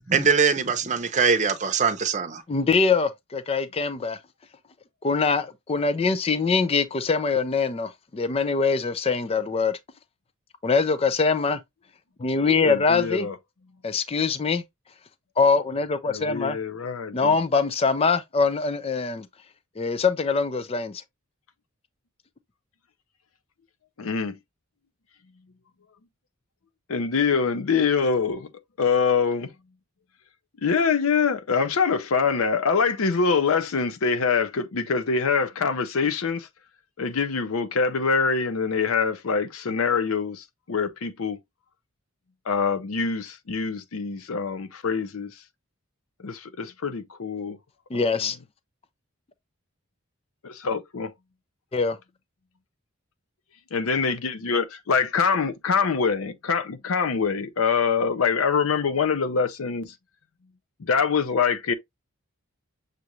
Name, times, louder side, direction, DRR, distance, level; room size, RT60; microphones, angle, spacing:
voice 1, 0.1-2.4, right 5 dB, 35° right, 0.7 m, -22 dB
voice 2, 2.5-4.2 5.0-9.8 10.6-11.6 12.2-13.3 13.8-14.6 15.4-16.6 17.1-19.3 19.8-21.0 47.9-48.4 51.7-52.0, left 4 dB, 25° left, 0.4 m, -23 dB
voice 3, 12.6-13.3 16.1-17.3 24.0-24.4 26.9-28.5 28.8-29.5 30.6-36.5 37.0-41.4 42.5-45.3 46.2-47.6 47.9-48.1 50.4-51.1 53.7-59.9 60.8-61.7, left 5 dB, 80° left, 0.6 m, -24 dB
6.7 x 2.5 x 3.0 m
head